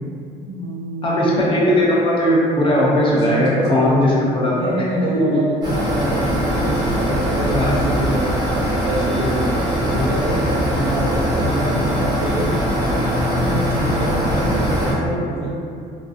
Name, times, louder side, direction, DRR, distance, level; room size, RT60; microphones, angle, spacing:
voice 1, 0.4-1.3 3.3-8.2 8.8-12.5 13.4-15.5, right 1 dB, 75° right, -6 dB, 0.7 m, -25 dB
voice 2, 1.0-4.5 5.3-5.4 7.5-7.8, left 1 dB, 30° left, -5 dB, 0.6 m, -18 dB
sound 1, 5.6-14.9, equal, 25° right, 0.8 m, -21 dB
2.4 x 2.2 x 2.4 m, 2.4 s
cardioid pair, 110°, 17 cm